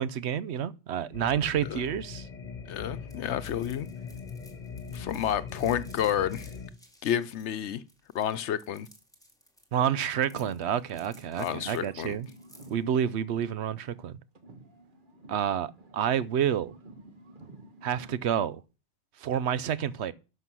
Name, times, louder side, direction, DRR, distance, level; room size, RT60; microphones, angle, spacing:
voice 1, 0.0-2.3 9.7-12.3 12.7-14.2 15.3-16.7 17.8-18.6 19.2-20.1, right 9 dB, 75° right, 0.9 m, -29 dB
sound 1, 1.1-6.7, left 6 dB, 45° left, 1.4 m, -41 dB
voice 2, 2.7-3.9 4.9-6.5 7.0-7.8 8.1-8.9 11.4-12.2, left 10 dB, 80° left, 1.0 m, -30 dB
sound 2, 3.1-12.8, equal, 5° left, 2.2 m, -57 dB
sound 3, 10.3-14.1 14.3-18.3, right 2 dB, 50° right, 1.5 m, -51 dB
11.5 x 5.8 x 6.2 m
omnidirectional pair, 1.1 m